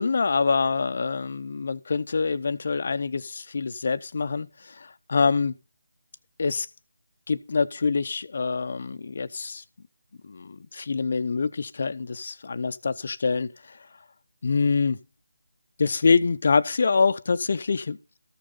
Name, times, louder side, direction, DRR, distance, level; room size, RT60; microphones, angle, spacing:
voice 1, 0.0-5.5 6.4-6.7 7.3-9.6 10.2-13.8 14.4-15.0 15.8-18.0, left 4 dB, 50° left, 0.7 m, -25 dB
14.5 x 6.5 x 5.3 m
figure-of-eight pair, 160°, 0 cm